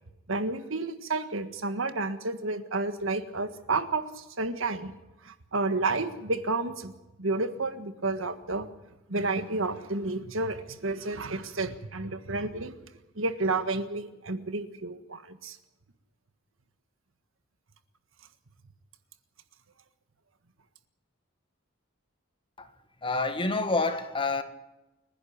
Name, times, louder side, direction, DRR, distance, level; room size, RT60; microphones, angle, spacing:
voice 1, 0.3-4.9 5.2-6.9 7.2-8.7 9.1-12.7 13.1-15.6, right 3 dB, 70° right, 1.6 m, -31 dB
voice 2, 23.0-24.4, left 3 dB, 25° left, 1.8 m, -28 dB
29.5 x 11.0 x 8.8 m
head